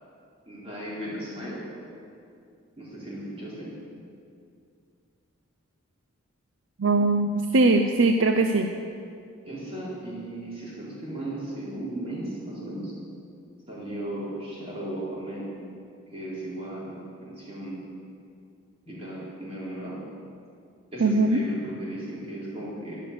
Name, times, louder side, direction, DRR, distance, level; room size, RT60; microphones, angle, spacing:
voice 1, 0.5-1.6 2.8-3.7 9.5-12.9 13.7-15.5 16.1-17.8 18.8-20.0 20.9-23.0, right 1 dB, 25° right, -7 dB, 4.4 m, -36 dB
voice 2, 6.8-8.7 21.0-21.4, right 2 dB, 65° right, 5 dB, 0.6 m, -21 dB
12.0 x 11.5 x 7.0 m, 2.4 s
head